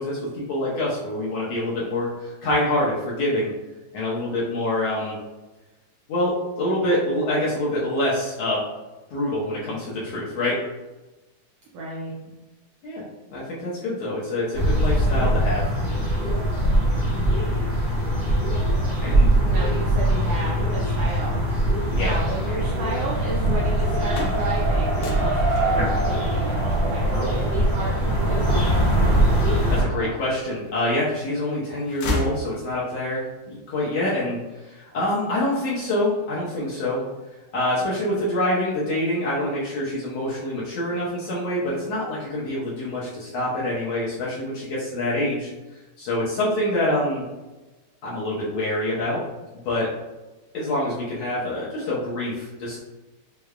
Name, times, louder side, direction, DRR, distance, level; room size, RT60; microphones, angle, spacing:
voice 1, 0.0-3.5 3.9-5.2 6.1-8.6 9.1-10.6 12.8-13.0 13.3-15.6 19.0-19.3 21.9-22.1 27.1-27.4 29.7-37.0 37.5-45.5 46.0-47.2 48.0-49.2 49.6-49.9 50.5-52.8, left 1 dB, 70° left, -7 dB, 1.7 m, -26 dB
voice 2, 11.7-12.3 17.0-17.7 19.4-21.5 22.0-29.3, right 2 dB, 85° right, -5 dB, 1.4 m, -33 dB
sound 1, 14.5-29.8, right 1 dB, 35° right, 0.8 m, -22 dB
Race car auto racing, 21.9-30.1, right 2 dB, 70° right, 0.8 m, -31 dB
sound 2, 24.0-29.8 30.3-31.2 31.5-33.1, left 1 dB, 85° left, 2.3 m, -33 dB
6.4 x 2.2 x 2.3 m, 1.1 s
omnidirectional pair, 3.5 m